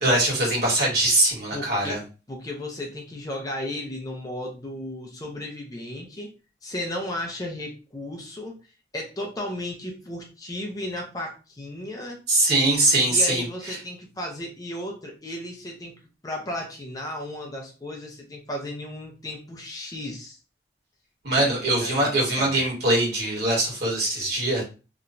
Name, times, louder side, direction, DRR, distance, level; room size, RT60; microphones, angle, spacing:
voice 1, 0.0-2.0 12.3-13.7 21.2-24.6, right 1 dB, 60° right, -3 dB, 1.4 m, -22 dB
voice 2, 1.5-2.0 2.3-6.3 6.6-8.6 8.9-12.2 13.1-15.9 16.2-20.4 21.3-22.6, left 1 dB, 20° left, 0 dB, 0.5 m, -34 dB
2.9 x 2.2 x 2.5 m, 0.33 s
head